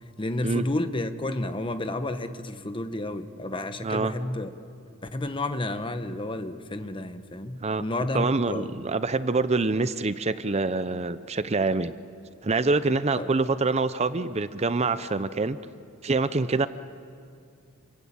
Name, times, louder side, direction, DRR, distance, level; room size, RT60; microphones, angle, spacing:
voice 1, 0.2-4.5 5.0-8.7 13.2-13.3, left 1 dB, 25° left, 9 dB, 1.1 m, -31 dB
voice 2, 3.8-4.1 7.6-7.8 8.1-11.9 12.4-15.6 16.0-16.7, right 3 dB, 30° right, 13 dB, 0.6 m, -25 dB
28.5 x 23.0 x 8.7 m, 2.3 s
head